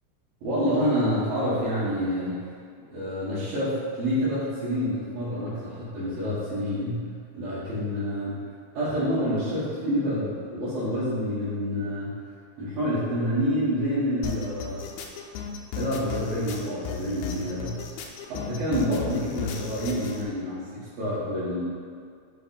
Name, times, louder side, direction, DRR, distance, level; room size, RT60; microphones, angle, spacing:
voice 1, 0.4-2.5 2.9-7.1 7.3-8.4 8.7-12.1 12.6-14.8 15.8-17.8 18.3-21.6, equal, 70° right, -13 dB, 3.3 m, -28 dB
sound 1, 14.2-20.2, left 6 dB, 85° left, 2.5 m, -35 dB
6.8 x 5.0 x 4.3 m, 2.2 s
omnidirectional pair, 4.3 m